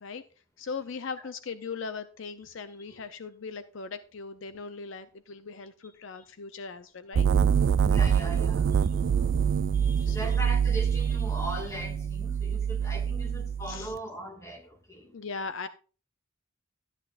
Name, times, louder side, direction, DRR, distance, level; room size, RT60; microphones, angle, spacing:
voice 1, 0.6-7.3 10.1-10.4 13.7-13.9 15.1-15.7, left 5 dB, 65° left, 0.6 m, -39 dB
sound 1, 7.1-13.9, right 7 dB, 60° right, 0.3 m, -25 dB
voice 2, 7.8-9.0 9.7-15.1, right 1 dB, 15° left, 2.1 m, -40 dB
13.0 x 9.9 x 2.5 m
head